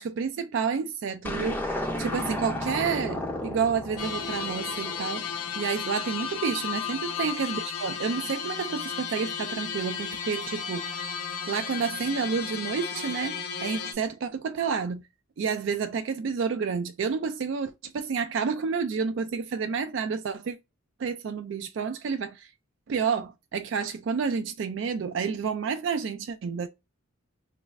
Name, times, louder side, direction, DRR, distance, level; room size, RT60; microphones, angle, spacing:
voice 1, 0.0-5.3 5.6-10.9 11.5-15.0 15.4-20.6 21.0-22.5 22.9-26.7, right 6 dB, 55° right, 0.3 m, -30 dB
sound 1, 1.2-5.6, left 1 dB, 10° left, 0.5 m, -33 dB
sound 2, 4.0-13.9, left 7 dB, 90° left, 0.5 m, -34 dB
3.1 x 2.5 x 3.1 m
head